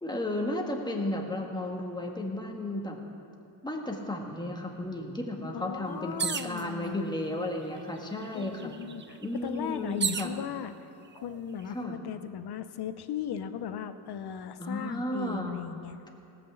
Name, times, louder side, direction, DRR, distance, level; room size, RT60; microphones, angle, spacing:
voice 1, 0.0-3.0 3.6-8.8 9.2-10.3 11.7-12.0 14.6-15.6, left 1 dB, 10° left, 1 dB, 1.7 m, -33 dB
voice 2, 5.5-7.1 8.3-10.7 11.1-16.0, left 9 dB, 70° left, 11 dB, 0.8 m, -37 dB
sound 1, 6.2-6.6 7.5-7.6 8.0-10.3 11.1-11.6, right 7 dB, 30° right, 0.5 m, -33 dB
18.0 x 6.0 x 7.9 m, 2.7 s
cardioid pair, 110°, 41 cm